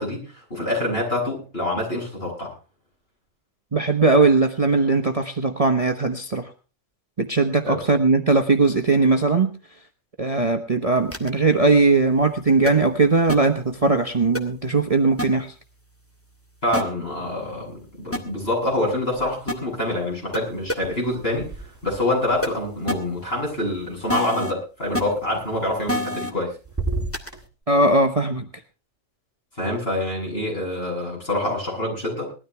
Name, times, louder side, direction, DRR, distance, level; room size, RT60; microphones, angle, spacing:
voice 1, 0.0-2.5 7.6-7.9 16.6-21.5 21.8-26.5 29.6-32.3, left 1 dB, 50° left, -2 dB, 7.9 m, -26 dB
voice 2, 3.7-6.5 7.2-9.5 10.2-15.5 27.7-28.5, right 3 dB, 30° right, 5 dB, 1.1 m, -19 dB
sound 1, 11.1-11.3 12.7-12.8 13.3-13.4 14.3-14.4 15.2-15.3 16.7-16.8 18.1-18.2 19.5-19.6 20.3-20.4 20.7-20.8 22.4-22.5 22.9-23.0 24.1-24.5 24.9-25.0 25.9-26.3 27.1-27.3, left 1 dB, 10° left, 1.8 m, -25 dB
sound 2, 19.0-19.8 20.0-24.1 25.8-26.4 26.6-27.4, right 3 dB, 10° right, 3.3 m, -35 dB
20.0 x 13.0 x 3.4 m, 0.34 s
omnidirectional pair, 1.3 m